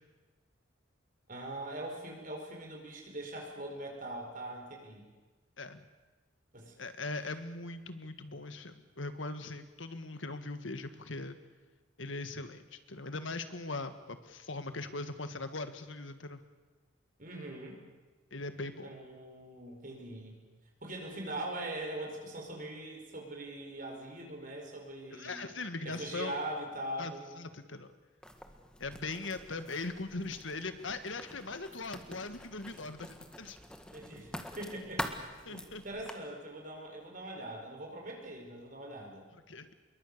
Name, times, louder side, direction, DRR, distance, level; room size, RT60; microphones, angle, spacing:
voice 1, 1.3-5.0 6.5-6.7 17.2-17.8 18.8-20.4 20.8-25.5 25.8-27.3 32.0-32.2 33.9-35.1 35.5-39.3, right 1 dB, 45° right, 1 dB, 4.9 m, -42 dB
voice 2, 6.8-11.4 12.0-16.4 18.3-19.0 25.1-26.3 27.0-27.9 28.8-33.6 35.5-35.8 39.3-39.7, left 3 dB, 75° left, 9 dB, 1.8 m, -40 dB
Writing, 28.2-36.1, left 1 dB, 5° left, 1.7 m, -45 dB
26.5 x 22.5 x 6.8 m, 1.2 s
head